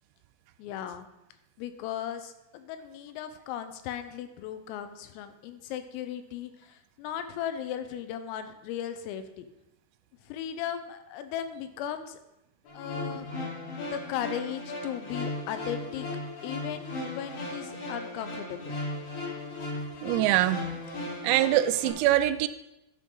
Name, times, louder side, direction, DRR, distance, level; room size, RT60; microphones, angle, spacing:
voice 1, 0.6-1.1 1.6-9.5 10.3-12.2 12.7-13.3 13.9-16.1 16.4-18.8, left 10 dB, 85° left, 9 dB, 3.5 m, -37 dB
sound 1, 12.7-21.9, left 2 dB, 65° left, 6.1 m, -36 dB
voice 2, 20.0-20.6 21.2-22.5, right 14 dB, 85° right, 11 dB, 3.3 m, -23 dB
12.0 x 10.0 x 3.9 m, 0.91 s
omnidirectional pair, 5.9 m